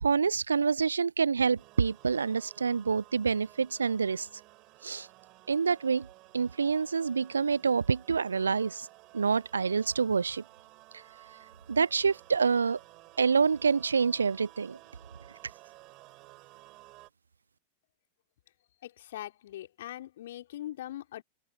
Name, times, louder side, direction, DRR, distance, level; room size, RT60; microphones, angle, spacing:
voice 1, 0.0-4.3 4.8-5.1 5.5-6.1 6.3-8.9 9.1-10.4 11.7-12.8 13.2-14.8, right 5 dB, 75° right, 0.5 m, -27 dB
sound 1, 1.6-17.1, right 20 dB, 40° right, 5.8 m, -55 dB
voice 2, 18.8-21.2, left 13 dB, 60° left, 4.1 m, -41 dB
open air
figure-of-eight pair, 90°, 0 cm